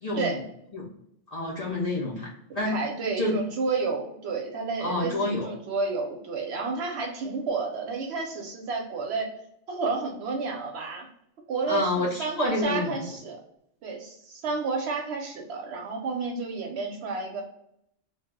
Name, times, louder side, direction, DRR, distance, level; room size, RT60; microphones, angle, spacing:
voice 1, 0.0-0.4 0.7-0.9 1.3-2.8 3.2-3.4 4.8-5.5 11.7-13.0, left 2 dB, 50° left, -5 dB, 0.5 m, -28 dB
voice 2, 2.7-9.3 9.7-11.1 11.5-13.4 13.8-17.4, right 4 dB, 65° right, 2 dB, 0.8 m, -31 dB
2.2 x 2.0 x 3.4 m, 0.76 s
omnidirectional pair, 1.3 m